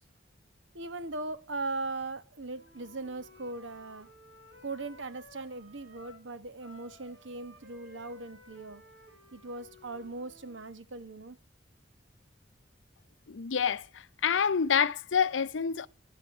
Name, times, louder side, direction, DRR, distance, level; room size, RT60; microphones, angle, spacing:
voice 1, 0.7-4.1 4.6-8.8 9.3-11.4, right 3 dB, 85° right, 1.2 m, -39 dB
Wind instrument woodwind instrument, 2.5-6.3 6.6-10.6, left 1 dB, 65° right, 7.1 m, -56 dB
voice 2, 13.3-13.9 14.2-15.9, left 7 dB, 85° left, 0.6 m, -27 dB
10.5 x 7.8 x 9.1 m
head